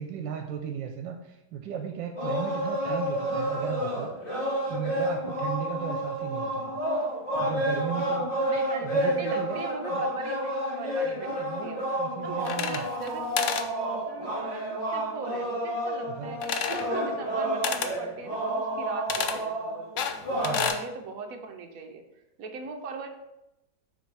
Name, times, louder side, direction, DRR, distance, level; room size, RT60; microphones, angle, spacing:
voice 1, 0.0-4.1 4.7-6.8 7.4-8.3 8.8-9.6 9.9-10.0 11.1-12.8 16.0-16.4 20.4-20.7, right 8 dB, 85° right, 4 dB, 1.3 m, -36 dB
sound 1, 2.2-20.7, equal, 30° left, 2.6 m, -30 dB
voice 2, 2.6-3.0 4.4-5.0 8.5-11.9 12.2-13.3 13.8-16.5 16.9-22.0 22.4-23.1, right 4 dB, 60° right, 5 dB, 1.1 m, -40 dB
sound 2, 12.4-13.1 13.4-13.7 16.4-16.9 17.6-18.0 19.1-19.4 20.0-20.8, left 7 dB, 75° left, 0.7 m, -30 dB
6.9 x 4.5 x 4.7 m, 0.92 s
omnidirectional pair, 1.9 m